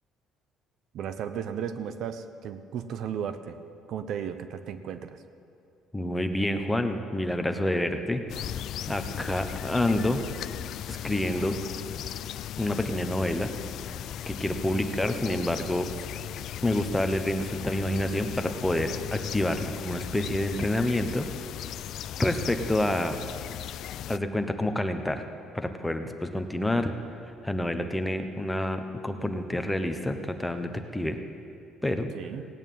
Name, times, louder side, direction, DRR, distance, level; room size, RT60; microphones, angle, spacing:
voice 1, 0.9-3.6 3.9-5.2 32.1-32.4, right 8 dB, 65° right, 10 dB, 0.8 m, -35 dB
voice 2, 5.9-8.2 8.9-10.2 10.9-11.6 12.6-13.5 14.3-15.9 16.6-21.3 22.2-23.2 24.1-25.2 25.5-26.9 27.4-31.2 31.8-32.1, left 1 dB, 5° left, 7 dB, 0.9 m, -28 dB
sound 1, 8.3-24.2, left 11 dB, 65° left, 0.3 m, -37 dB
17.0 x 8.9 x 9.2 m, 2.6 s
cardioid pair, 130°, 0 cm